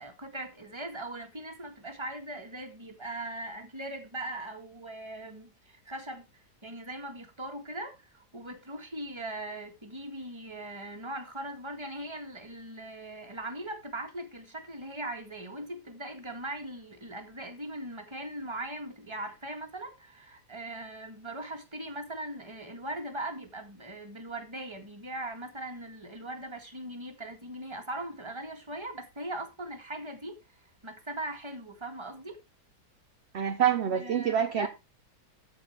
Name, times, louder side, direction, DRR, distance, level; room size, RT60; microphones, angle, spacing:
voice 1, 0.0-30.4 30.8-32.4 33.9-34.7, right 1 dB, 15° right, 1.8 m, -40 dB
voice 2, 33.3-34.7, right 9 dB, 50° right, 1.0 m, -26 dB
13.5 x 4.8 x 4.6 m
omnidirectional pair, 1.7 m